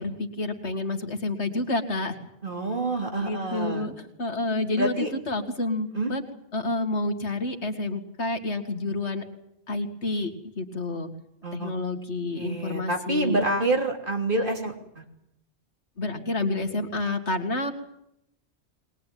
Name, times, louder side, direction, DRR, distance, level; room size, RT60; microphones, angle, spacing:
voice 1, 0.0-2.3 3.2-6.2 6.5-9.2 9.7-11.1 11.5-13.4 16.0-17.7, left 2 dB, 80° left, 6 dB, 2.4 m, -29 dB
voice 2, 2.4-3.9 4.8-5.1 5.9-6.1 11.4-11.7 12.3-15.0, right 2 dB, 50° right, 3 dB, 3.5 m, -27 dB
22.0 x 20.5 x 9.3 m, 0.78 s
omnidirectional pair, 1.1 m